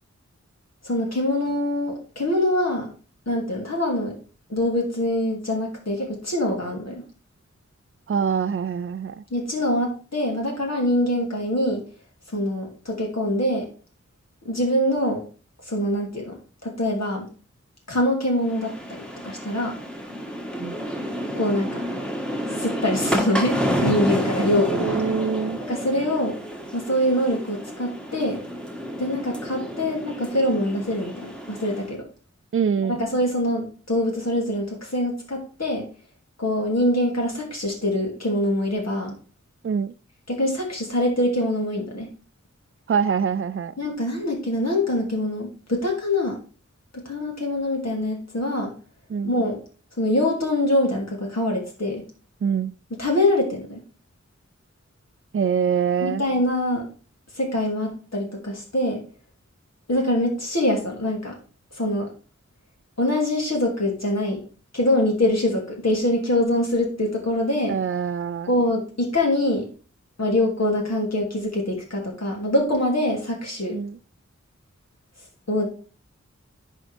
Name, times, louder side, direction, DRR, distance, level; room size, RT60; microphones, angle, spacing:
voice 1, 0.8-2.9 3.3-4.2 4.5-7.0 9.3-11.8 12.3-13.7 14.4-15.2 15.6-17.3 17.9-19.8 21.4-21.9 22.5-25.0 25.7-26.4 26.7-28.4 29.0-32.1 32.9-35.9 36.4-39.1 40.3-42.1 43.8-46.4 46.9-48.7 49.2-49.6 50.0-52.0 53.0-53.8 56.0-56.9 57.3-59.0 59.9-61.4 61.7-62.1 63.0-64.4 64.7-67.8 68.5-69.7 70.2-73.8 75.5-75.6, left 1 dB, 65° left, 2.7 m, -24 dB
voice 2, 8.1-9.2 20.6-20.8 24.7-25.6 32.5-33.0 39.6-39.9 42.9-43.7 49.1-49.3 52.4-52.7 55.3-56.2 67.7-68.5 73.7-74.0, right 6 dB, 45° right, 0.4 m, -24 dB
sound 1, 18.4-31.9, equal, 5° left, 1.6 m, -30 dB
10.5 x 4.2 x 3.4 m
wide cardioid pair, 40°, 29 cm